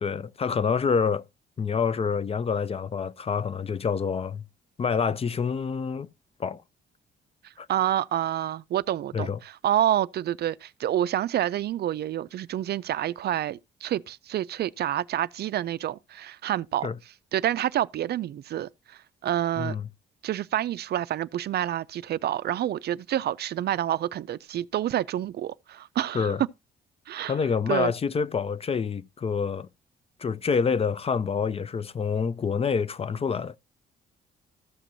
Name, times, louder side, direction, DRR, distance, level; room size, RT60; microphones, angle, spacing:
voice 1, 0.0-1.2 1.6-4.4 4.8-6.1 6.4-6.6 7.6-7.7 9.1-9.4 16.8-16.9 19.6-19.9 26.1-26.4 27.3-29.7 30.2-33.6, left 6 dB, 30° left, 0.4 m, -27 dB
voice 2, 7.4-16.9 17.3-19.8 20.2-26.3 27.1-27.4 27.7-27.9, right 12 dB, 55° right, 0.4 m, -28 dB
14.0 x 5.9 x 2.6 m
cardioid pair, 90°, 20 cm